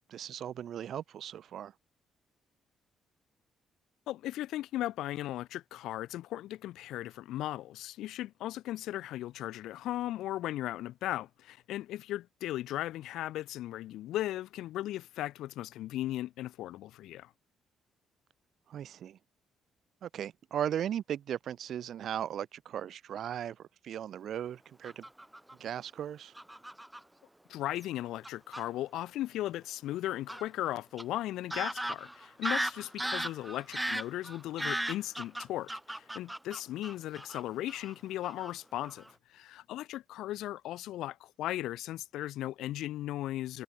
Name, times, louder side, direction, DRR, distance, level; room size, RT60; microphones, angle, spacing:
voice 1, 0.1-1.7 18.7-19.2 20.0-25.0 25.6-26.3, right 10 dB, 65° right, 4.2 m, -37 dB
voice 2, 4.1-17.3 27.5-43.6, left 14 dB, 85° left, 2.7 m, -37 dB
Fowl / Bird vocalization bird call bird song, 24.8-25.5 26.4-27.0 27.8-27.9 28.2-28.6 30.3-30.4 31.0-31.1 31.5-37.4 37.7-37.9 38.2-38.5 38.8-39.1, right 1 dB, 5° right, 6.0 m, -36 dB
cardioid pair, 90°, 0 cm